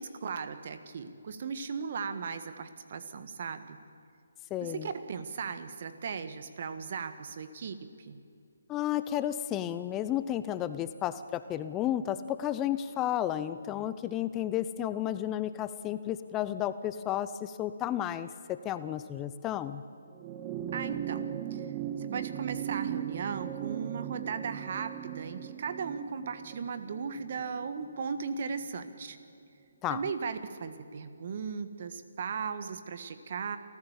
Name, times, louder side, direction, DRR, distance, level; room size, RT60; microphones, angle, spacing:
voice 1, 0.0-3.8 4.6-8.2 20.7-21.2 21.5-21.7 22.0-29.2 29.9-33.6, right 6 dB, 50° right, 11 dB, 1.5 m, -37 dB
voice 2, 4.5-4.9 8.7-19.8 29.8-30.0, left 11 dB, 15° left, 13 dB, 0.5 m, -32 dB
sound 1, 20.1-28.8 30.0-30.1, right 10 dB, 25° right, 0.9 m, -38 dB
28.0 x 14.5 x 7.3 m, 2.4 s
figure-of-eight pair, 150°, 0 cm